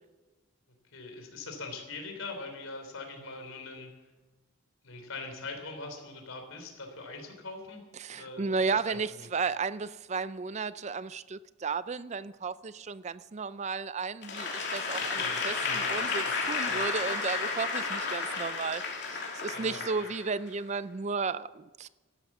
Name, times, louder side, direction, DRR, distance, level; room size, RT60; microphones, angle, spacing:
voice 1, 0.9-3.9 4.8-7.8 8.1-8.5 8.7-9.3 15.1-15.9 16.2-16.3 16.6-16.8 19.5-20.1, left 3 dB, 80° left, 4 dB, 3.3 m, -42 dB
voice 2, 8.0-18.8 19.1-21.9, right 4 dB, 35° right, 16 dB, 0.4 m, -34 dB
Applause / Crowd, 14.2-20.6, left 4 dB, 55° left, 2.8 m, -32 dB
13.5 x 12.0 x 7.3 m, 1.2 s
head